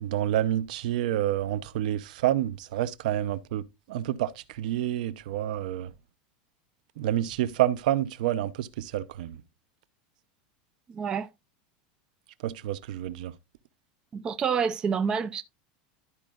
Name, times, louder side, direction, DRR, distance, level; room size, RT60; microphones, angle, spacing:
voice 1, 0.0-5.9 7.0-9.4 12.4-13.3, right 12 dB, 70° right, 0.7 m, -28 dB
voice 2, 10.9-11.3 14.1-15.4, right 6 dB, 20° right, 0.5 m, -28 dB
12.5 x 4.8 x 2.4 m
supercardioid pair, 160°, 5 cm